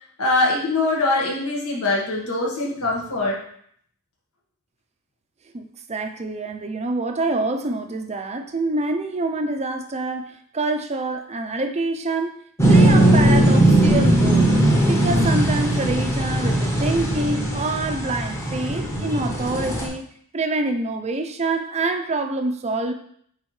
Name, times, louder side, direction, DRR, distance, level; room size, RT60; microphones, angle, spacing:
voice 1, 0.2-3.4, left 2 dB, 75° left, -3 dB, 1.6 m, -22 dB
voice 2, 5.5-12.4 12.7-14.6 14.9-20.1 20.3-22.9, right 2 dB, 30° right, 6 dB, 0.5 m, -26 dB
sound 1, 12.6-19.9, right 1 dB, 15° left, 1.0 m, -18 dB
8.6 x 3.7 x 3.2 m, 0.64 s
head